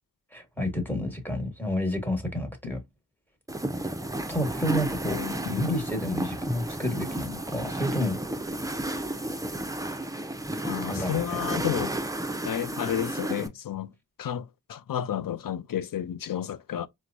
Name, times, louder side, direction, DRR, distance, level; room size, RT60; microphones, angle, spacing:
voice 1, 0.3-2.8 4.3-5.2 5.4-8.2 10.8-11.4, left 1 dB, 5° left, 1.3 m, -30 dB
sound 1, 3.5-13.5, right 1 dB, 10° right, 0.5 m, -32 dB
voice 2, 5.1-5.8 10.6-11.9 12.4-13.9 14.2-16.9, left 10 dB, 70° left, 0.5 m, -31 dB
4.5 x 2.2 x 2.5 m
wide cardioid pair, 50°, 35 cm